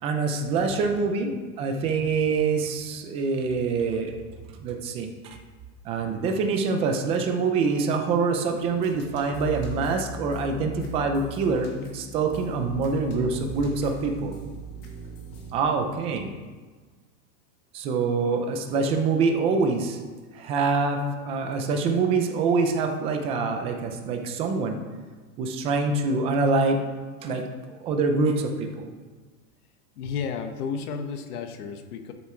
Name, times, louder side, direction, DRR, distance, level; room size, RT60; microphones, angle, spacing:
voice 1, 0.0-4.1 4.6-5.4 5.8-14.4 15.5-16.3 17.7-20.0 20.3-24.8 25.4-26.8 27.2-28.9, right 4 dB, 15° right, 5 dB, 0.3 m, -25 dB
sound 1, 8.5-15.5, left 1 dB, 40° left, 2.0 m, -39 dB
voice 2, 30.0-32.1, left 6 dB, 80° left, 7 dB, 1.3 m, -33 dB
12.5 x 6.9 x 4.3 m, 1.4 s
supercardioid pair, 160°, 44 cm